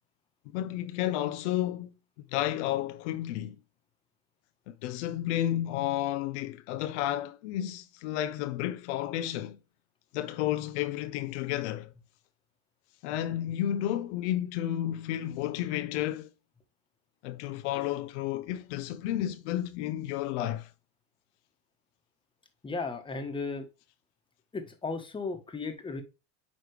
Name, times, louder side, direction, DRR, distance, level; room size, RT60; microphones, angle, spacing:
voice 1, 0.5-3.6 4.7-9.6 10.1-11.9 13.0-16.3 17.2-20.7, left 12 dB, 75° left, 0.6 m, -32 dB
voice 2, 22.6-23.7 24.5-26.0, left 4 dB, 15° left, 1.2 m, -35 dB
9.1 x 3.2 x 3.2 m
supercardioid pair, 120°, 35 cm